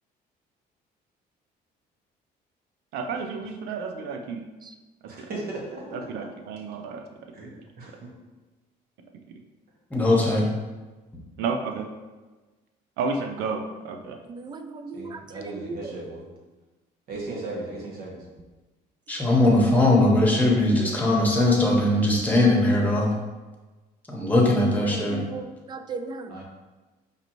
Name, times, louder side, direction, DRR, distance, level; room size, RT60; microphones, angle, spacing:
voice 1, 2.9-4.4 5.0-5.3 5.9-7.0 7.4-8.0 9.3-9.4 11.4-11.9 13.0-14.2, right 4 dB, 90° right, 4 dB, 0.5 m, -32 dB
voice 2, 5.0-6.3 7.3-7.5 7.8-8.1 14.9-16.2 17.1-18.2 26.3-26.4, right 2 dB, 65° right, -3 dB, 1.3 m, -36 dB
voice 3, 9.9-10.5 19.1-23.1 24.1-25.2, left 1 dB, 10° left, -2 dB, 1.0 m, -20 dB
voice 4, 14.3-15.2 24.9-26.3, right 3 dB, 25° right, 8 dB, 0.3 m, -36 dB
5.0 x 2.7 x 3.0 m, 1.2 s
cardioid pair, 110°, 17 cm